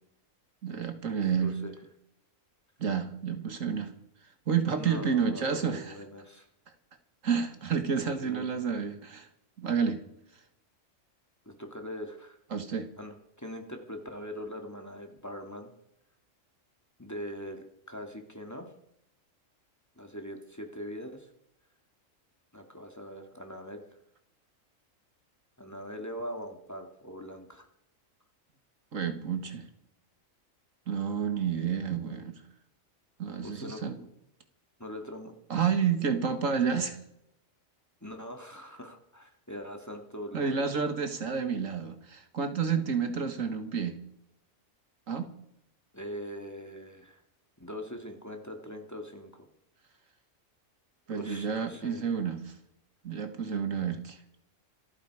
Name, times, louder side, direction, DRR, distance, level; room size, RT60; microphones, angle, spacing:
voice 1, 0.6-1.6 2.8-3.9 4.5-6.0 7.2-9.3 9.6-10.0 12.5-12.9 28.9-29.7 30.9-32.4 33.2-34.0 35.5-37.0 40.3-44.0 45.1-45.3 51.1-52.5 53.0-54.2, right 6 dB, 75° right, 8 dB, 2.0 m, -30 dB
voice 2, 1.4-1.7 4.8-6.5 8.2-8.6 11.4-12.4 13.0-15.7 17.0-18.7 20.0-21.3 22.5-23.8 25.6-27.7 33.4-33.8 34.8-35.3 38.0-40.7 45.9-47.2 47.6-49.4 51.1-52.1, equal, 10° left, 4 dB, 2.2 m, -42 dB
26.5 x 9.3 x 4.8 m, 0.76 s
omnidirectional pair, 1.4 m